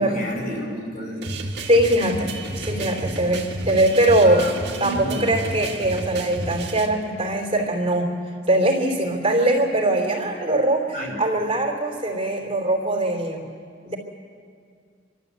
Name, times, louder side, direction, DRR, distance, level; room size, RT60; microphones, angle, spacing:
voice 1, 0.0-1.4 4.2-5.3 10.9-11.2, equal, 55° left, 0 dB, 6.1 m, -31 dB
sound 1, 1.2-6.9, right 2 dB, 65° right, 2.3 m, -31 dB
voice 2, 1.7-4.5 4.8-8.1 8.5-10.9 11.2-13.4 13.8-14.0, right 1 dB, 35° right, 0 dB, 3.1 m, -21 dB
27.5 x 13.0 x 8.1 m, 2.2 s
head